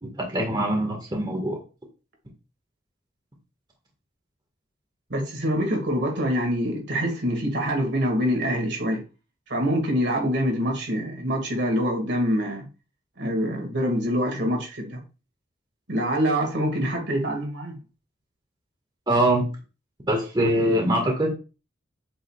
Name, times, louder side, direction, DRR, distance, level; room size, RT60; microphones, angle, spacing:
voice 1, 0.0-1.6 19.1-19.5 20.1-21.3, right 1 dB, 25° right, -1 dB, 1.7 m, -23 dB
voice 2, 5.1-9.0 9.5-12.6 13.2-15.0 15.9-17.8, equal, 60° right, 2 dB, 2.2 m, -25 dB
8.1 x 5.4 x 2.4 m, 0.32 s
head